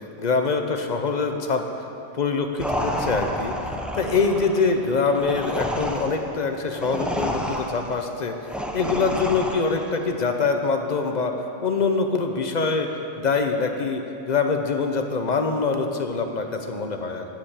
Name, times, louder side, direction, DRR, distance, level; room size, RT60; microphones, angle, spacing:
voice 1, 0.2-1.7 2.1-3.5 3.9-8.3 8.7-12.9 13.2-17.3, left 4 dB, 40° left, 5 dB, 0.8 m, -24 dB
sound 1, 2.6-10.0, equal, ahead, 0.5 m, -30 dB
13.0 x 5.1 x 8.9 m, 2.9 s
omnidirectional pair, 1.3 m